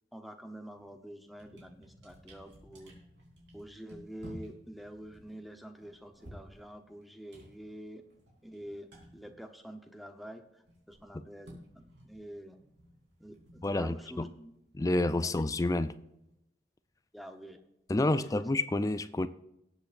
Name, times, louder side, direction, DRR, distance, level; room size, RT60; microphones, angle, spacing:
voice 1, 0.1-3.0 3.5-8.0 8.4-8.9 9.1-12.6 13.2-14.6 15.2-15.4 17.1-17.6 18.1-18.3, right 1 dB, ahead, 6 dB, 0.8 m, -47 dB
sound 1, 0.8-1.0 1.3-10.1 10.4-16.3, equal, 85° right, 3.5 m, -55 dB
voice 2, 13.6-14.3 14.7-15.9 17.9-19.3, left 2 dB, 20° left, 13 dB, 0.4 m, -29 dB
19.0 x 8.1 x 2.5 m, 0.86 s
head